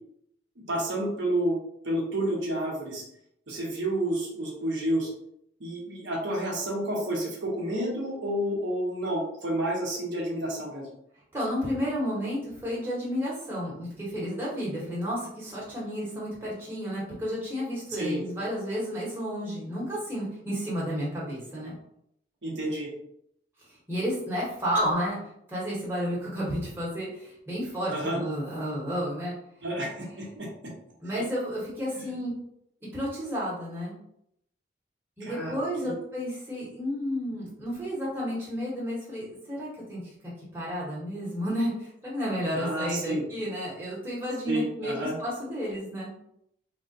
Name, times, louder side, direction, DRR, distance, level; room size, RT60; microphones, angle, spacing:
voice 1, 0.7-1.6 1.8-3.0 3.5-5.1 5.6-10.9 18.0-18.2 22.4-22.9 27.9-28.2 29.6-30.7 31.9-32.1 35.2-35.9 42.5-43.2 44.5-45.2, right 1 dB, 85° right, -3 dB, 1.0 m, -30 dB
voice 2, 11.3-21.7 23.9-25.2 25.5-29.3 31.0-32.3 32.9-34.0 35.2-44.9 45.2-46.1, equal, 10° right, -7 dB, 1.0 m, -31 dB
3.4 x 2.2 x 2.6 m, 0.73 s
head